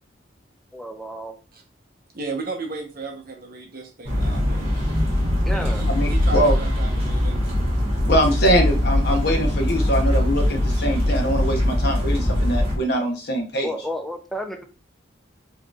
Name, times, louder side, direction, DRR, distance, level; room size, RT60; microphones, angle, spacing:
voice 1, 0.7-1.4 5.5-5.9 6.5-6.6 13.6-14.6, equal, ahead, 5 dB, 0.4 m, -31 dB
voice 2, 2.1-4.7 5.5-7.4, right 3 dB, 50° right, 2 dB, 0.8 m, -34 dB
sound 1, 4.0-12.8, left 1 dB, 30° right, 1.3 m, -21 dB
voice 3, 5.9-6.6 8.1-13.7, equal, 60° left, 3 dB, 0.8 m, -23 dB
4.5 x 2.9 x 2.3 m, 0.33 s
head